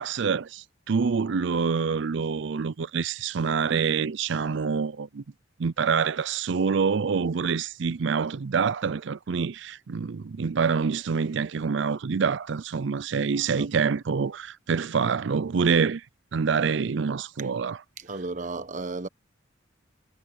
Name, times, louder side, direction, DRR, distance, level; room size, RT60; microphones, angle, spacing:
voice 1, 0.0-5.2 5.6-16.0 16.3-17.8, right 5 dB, 65° right, 0.5 m, -26 dB
voice 2, 18.0-19.1, right 3 dB, 40° right, 1.0 m, -34 dB
head